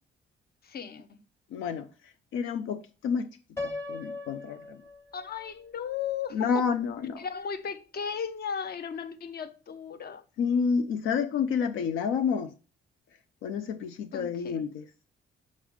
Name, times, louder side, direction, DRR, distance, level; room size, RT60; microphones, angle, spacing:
voice 1, 0.6-1.2 5.1-6.6 7.2-10.2 14.1-14.6, left 7 dB, 50° left, 0.8 m, -36 dB
voice 2, 1.5-3.3 3.6-4.8 6.3-7.2 10.4-12.5 13.4-14.8, left 6 dB, 85° left, 0.5 m, -29 dB
Piano, 3.6-5.5, left 3 dB, 10° left, 1.0 m, -38 dB
6.4 x 3.4 x 4.7 m
cardioid pair, 90°, 20 cm